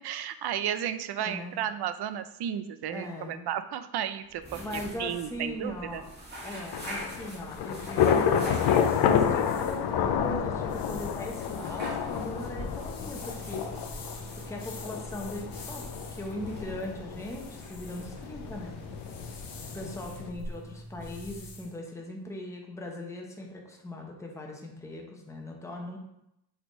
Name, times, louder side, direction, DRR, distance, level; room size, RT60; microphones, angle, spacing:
voice 1, 0.0-6.0, right 10 dB, 85° right, 11 dB, 0.6 m, -33 dB
voice 2, 1.2-1.6 2.9-3.5 4.6-6.1 6.4-13.8 14.4-18.8 19.7-26.0, left 1 dB, 10° left, 0 dB, 0.7 m, -39 dB
sound 1, 4.2-20.4, right 1 dB, 25° right, 1.7 m, -46 dB
Thunder / Rain, 6.7-20.3, left 8 dB, 85° left, 0.6 m, -30 dB
sound 2, 8.4-21.7, left 2 dB, 60° left, 1.0 m, -44 dB
6.6 x 3.4 x 4.5 m, 0.83 s
wide cardioid pair, 165°, 38 cm